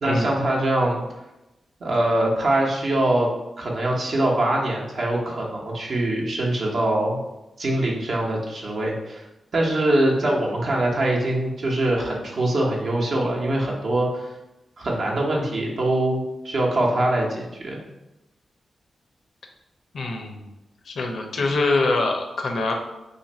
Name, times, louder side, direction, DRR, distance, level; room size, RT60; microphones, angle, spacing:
voice 1, 0.0-1.0 1.8-3.3 3.6-7.2 7.6-9.2 9.5-14.3 14.8-17.8, right 1 dB, 65° right, -2 dB, 0.8 m, -23 dB
voice 2, 19.9-20.4 20.9-22.7, left 3 dB, 75° left, 3 dB, 0.5 m, -24 dB
2.6 x 2.5 x 4.1 m, 0.99 s
cardioid pair, 65°, 0 cm